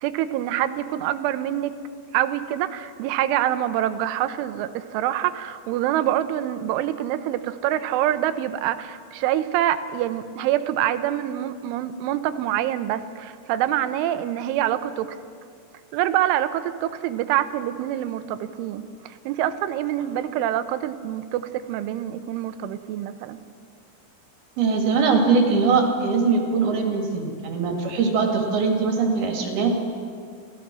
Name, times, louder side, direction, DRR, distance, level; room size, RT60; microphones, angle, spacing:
voice 1, 0.0-1.8 2.1-15.2 15.9-23.4, right 12 dB, 85° right, 11 dB, 3.3 m, -26 dB
voice 2, 24.6-29.7, right 4 dB, 60° right, 2 dB, 4.0 m, -21 dB
29.0 x 17.0 x 6.2 m, 2.2 s
omnidirectional pair, 5.5 m